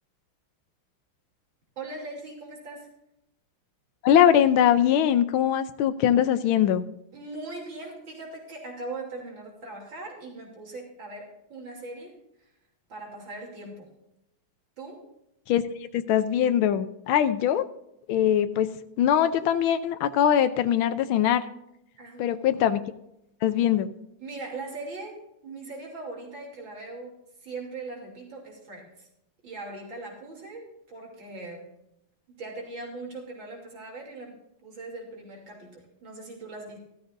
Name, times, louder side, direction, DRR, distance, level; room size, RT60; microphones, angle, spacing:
voice 1, 1.8-2.9 7.1-12.2 12.9-13.9 14.8-15.0 22.0-22.4 24.2-27.1 27.4-29.1 29.4-31.6 32.3-36.8, right 2 dB, 65° right, 0 dB, 3.8 m, -40 dB
voice 2, 4.0-6.8 15.5-17.7 18.1-18.7 19.0-21.4 22.2-22.8 23.4-23.9, left 10 dB, 80° left, 10 dB, 1.5 m, -22 dB
14.5 x 13.0 x 2.6 m, 0.82 s
omnidirectional pair, 2.3 m